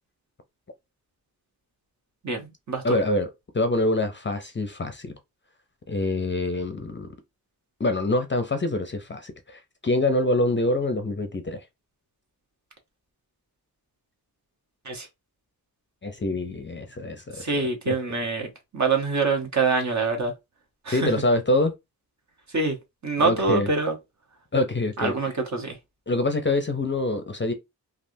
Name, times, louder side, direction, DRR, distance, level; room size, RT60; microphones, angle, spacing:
voice 1, 2.2-3.0 14.8-15.1 17.3-20.3 20.8-21.1 22.5-23.9 25.0-25.8, right 4 dB, 45° right, 1.0 m, -25 dB
voice 2, 2.8-3.3 3.5-5.1 5.9-7.1 7.8-11.6 16.0-17.4 17.9-18.0 20.9-21.7 23.2-23.7 24.5-25.1 26.1-27.5, left 2 dB, 30° left, 0.5 m, -25 dB
3.3 x 2.4 x 2.6 m
wide cardioid pair, 70°, 38 cm